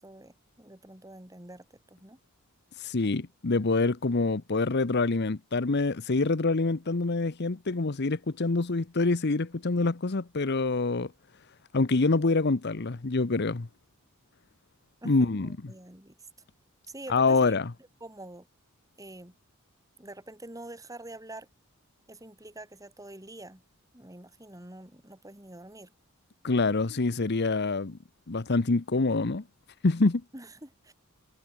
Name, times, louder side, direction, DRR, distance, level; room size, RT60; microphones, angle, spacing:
voice 1, 0.0-2.2 15.0-16.2 16.9-17.6 18.0-18.5 19.0-19.3 20.0-21.5 22.1-23.6 23.9-25.9 30.3-30.9, right 1 dB, 15° right, 3.1 m, -46 dB
voice 2, 2.8-11.1 11.7-13.7 15.0-15.5 17.1-17.7 26.4-28.0 28.3-29.4 29.8-30.2, left 3 dB, 50° left, 0.8 m, -26 dB
head